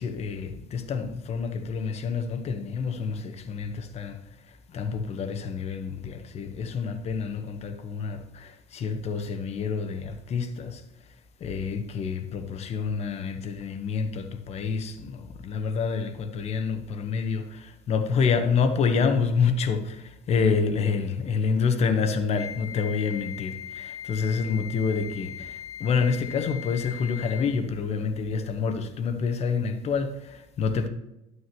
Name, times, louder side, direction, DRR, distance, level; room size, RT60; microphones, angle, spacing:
voice 1, 0.0-4.2 4.7-10.8 11.4-30.9, left 5 dB, 40° left, 1.2 m, -28 dB
Wind instrument woodwind instrument, 22.3-27.7, left 9 dB, 20° left, 1.1 m, -39 dB
11.0 x 9.7 x 3.1 m
supercardioid pair, 115°, 17 cm